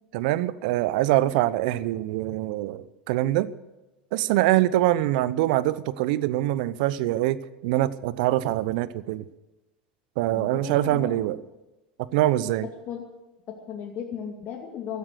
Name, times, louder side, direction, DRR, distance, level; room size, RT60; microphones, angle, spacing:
voice 1, 0.1-3.5 4.1-9.2 10.2-11.4 12.0-12.7, right 15 dB, 65° right, 18 dB, 0.8 m, -24 dB
voice 2, 10.3-11.4 12.9-13.0 13.5-15.0, left 8 dB, 45° left, 1 dB, 2.5 m, -36 dB
16.5 x 13.5 x 6.5 m, 1.0 s
hypercardioid pair, 80°, 5 cm